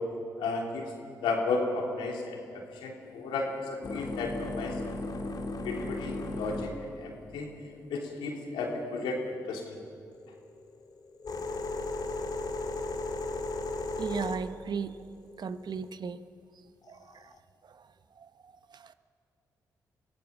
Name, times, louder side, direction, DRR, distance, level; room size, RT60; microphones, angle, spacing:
voice 1, 0.4-0.9 1.2-4.8 5.6-7.5 7.9-9.2 9.5-9.8, left 3 dB, 85° left, 0 dB, 3.3 m, -33 dB
sound 1, 3.0-9.3 10.1-15.9 16.9-17.4, left 2 dB, 55° left, 2.6 m, -37 dB
voice 2, 14.0-14.9 15.4-16.2 16.9-17.0, right 6 dB, 60° right, 12 dB, 1.0 m, -34 dB
24.0 x 17.0 x 7.3 m, 2.3 s
supercardioid pair, 45°, 8 cm